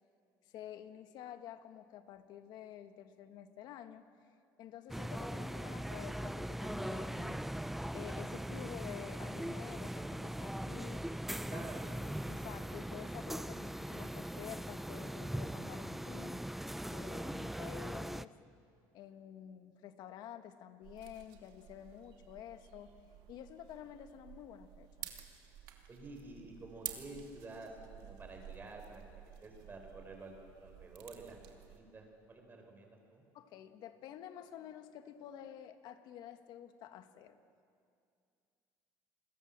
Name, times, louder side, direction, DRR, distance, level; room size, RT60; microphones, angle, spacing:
voice 1, 0.4-4.1 4.6-7.4 7.9-11.0 11.5-11.7 12.3-16.5 16.8-18.4 18.9-22.9 23.3-25.1 33.3-37.4, left 10 dB, 65° left, 9 dB, 1.7 m, -50 dB
sound 1, 4.9-18.3, right 1 dB, 5° right, 0.5 m, -40 dB
voice 2, 11.5-11.8 25.9-33.2, right 2 dB, 25° right, 3 dB, 5.4 m, -50 dB
sound 2, 20.8-31.8, right 12 dB, 75° right, 2.7 m, -52 dB
29.0 x 21.0 x 7.6 m, 2.4 s
cardioid pair, 115°, 8 cm